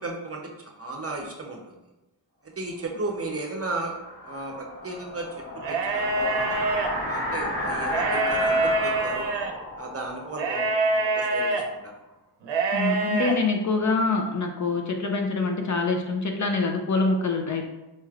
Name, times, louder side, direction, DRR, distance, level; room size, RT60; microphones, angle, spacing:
voice 1, 0.0-1.8 2.6-4.0 4.2-6.6 7.1-9.3 9.8-12.0, right 2 dB, 35° right, 1 dB, 0.7 m, -35 dB
sound 1, 2.9-11.7, left 1 dB, 25° left, 1.2 m, -33 dB
sound 2, 5.6-6.9 7.8-9.5 10.4-11.6 12.4-13.3, right 2 dB, 80° right, 0.6 m, -25 dB
voice 2, 12.7-17.6, left 3 dB, 45° left, 3 dB, 0.5 m, -25 dB
4.3 x 3.0 x 2.4 m, 1.0 s
cardioid pair, 75°, 43 cm